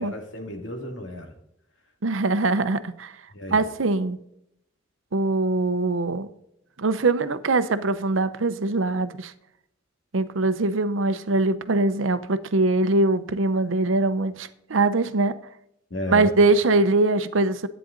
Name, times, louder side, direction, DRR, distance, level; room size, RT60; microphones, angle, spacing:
voice 1, 0.0-1.3 3.3-3.6 15.9-16.3, left 1 dB, 70° left, 2.3 m, -33 dB
voice 2, 2.0-3.1 3.5-4.2 5.1-6.3 6.8-9.3 10.1-15.4 16.1-17.7, right 2 dB, 85° right, 0.7 m, -22 dB
11.0 x 9.1 x 3.9 m
head